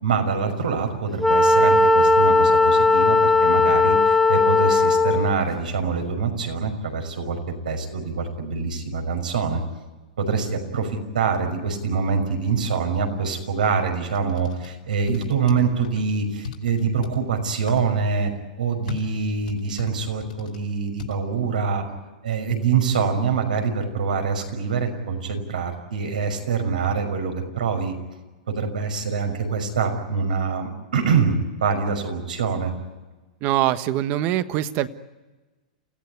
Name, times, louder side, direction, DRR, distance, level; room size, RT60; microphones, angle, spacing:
voice 1, 0.0-7.4 7.7-9.6 10.2-21.8 22.2-28.0 28.5-32.7, right 5 dB, 90° right, 4 dB, 5.8 m, -25 dB
Wind instrument woodwind instrument, 1.2-5.4, left 2 dB, ahead, 1.7 m, -17 dB
sound 1, 14.1-14.7 15.1-16.0 16.4-17.2 17.7-17.8 18.9-20.6 21.0-21.1, left 6 dB, 85° left, 4.7 m, -34 dB
voice 2, 33.4-34.9, right 13 dB, 45° right, 12 dB, 1.4 m, -23 dB
28.5 x 16.5 x 9.6 m, 1.2 s
hypercardioid pair, 125°, 4 cm